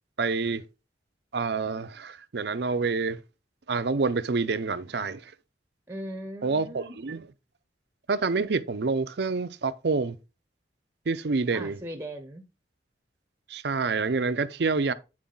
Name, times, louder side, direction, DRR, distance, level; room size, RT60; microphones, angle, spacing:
voice 1, 0.2-0.6 1.3-3.2 3.7-5.3 6.4-7.3 8.1-10.2 11.1-11.8 13.5-14.9, right 4 dB, 60° right, 0.6 m, -27 dB
voice 2, 5.9-6.9 11.5-12.4, right 1 dB, 15° right, 0.8 m, -38 dB
8.5 x 4.7 x 3.8 m
head